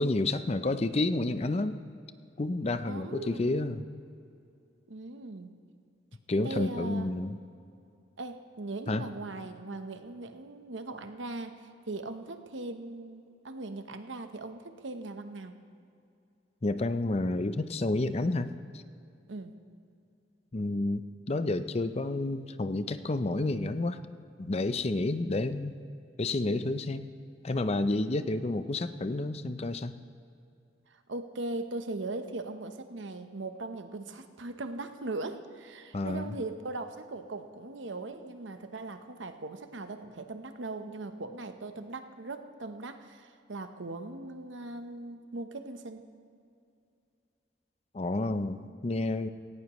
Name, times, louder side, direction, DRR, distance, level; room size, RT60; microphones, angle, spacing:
voice 1, 0.0-1.8 2.4-3.8 6.3-7.4 8.9-9.0 16.6-18.8 20.5-21.0 21.3-24.0 24.4-25.7 26.2-27.1 27.4-29.9 35.9-36.4 47.9-49.3, left 2 dB, 35° left, 11 dB, 0.5 m, -30 dB
voice 2, 2.8-3.6 4.9-5.5 6.4-7.1 8.2-15.5 19.3-19.5 30.9-46.1, right 2 dB, 90° right, 8 dB, 0.9 m, -39 dB
17.5 x 16.0 x 3.1 m, 2.5 s
head